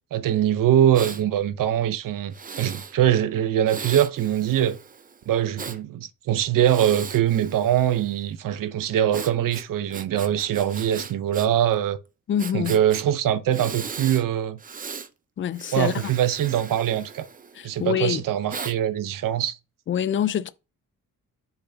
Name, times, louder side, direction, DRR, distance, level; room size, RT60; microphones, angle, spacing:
voice 1, 0.1-4.8 5.3-12.0 12.5-14.6 15.7-17.3 17.6-19.6, right 11 dB, 75° right, 0.8 m, -23 dB
Breathing, 0.9-1.2 2.3-3.0 3.7-5.8 6.6-8.2 9.1-11.5 11.7-11.8 12.4-13.0 13.5-14.2 14.6-15.1 15.5-17.7 18.5-18.8, right 5 dB, 25° right, 0.5 m, -38 dB
voice 2, 12.3-12.8 15.4-16.1 17.5-18.2 19.9-20.5, left 9 dB, 40° left, 0.4 m, -25 dB
6.9 x 5.7 x 2.7 m
wide cardioid pair, 140°, 33 cm